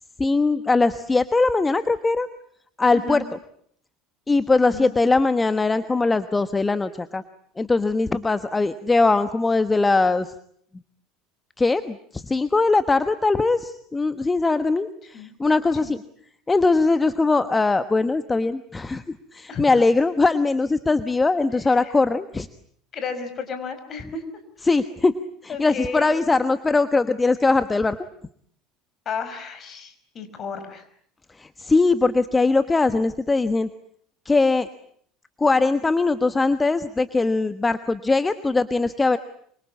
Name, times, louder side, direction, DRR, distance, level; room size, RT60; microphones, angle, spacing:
voice 1, 0.2-2.3 2.8-3.2 4.3-7.2 7.6-10.3 11.6-16.0 16.5-19.0 19.3-22.5 24.6-25.1 25.4-28.0 31.4-33.7 34.2-34.7 35.4-39.2, left 3 dB, 20° left, 12 dB, 1.2 m, -21 dB
voice 2, 2.9-3.2 4.7-5.2 15.1-15.3 15.8-15.9 19.5-19.6 21.7-21.9 22.9-24.2 25.5-26.2 29.1-30.8, left 5 dB, 40° left, 10 dB, 5.2 m, -33 dB
26.0 x 25.0 x 8.5 m, 0.64 s
hypercardioid pair, 70°, 0 cm